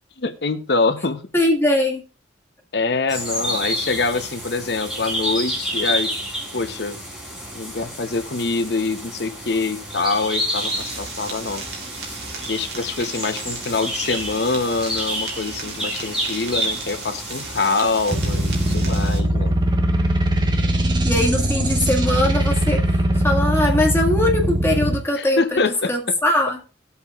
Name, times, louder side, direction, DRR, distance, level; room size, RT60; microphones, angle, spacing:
voice 1, 0.2-1.2 2.7-6.1 6.5-7.0 7.5-11.6 12.0-12.1 12.5-19.5 25.2-26.2, left 3 dB, 60° left, 10 dB, 0.8 m, -24 dB
voice 2, 1.3-2.0 21.0-26.6, left 1 dB, 15° left, 0 dB, 1.8 m, -21 dB
sound 1, 3.1-18.7, equal, ahead, 3.5 m, -30 dB
sound 2, 10.6-19.2, right 4 dB, 60° right, 3.2 m, -36 dB
sound 3, 18.1-25.0, right 1 dB, 25° right, 1.0 m, -20 dB
19.0 x 8.0 x 2.4 m, 0.35 s
head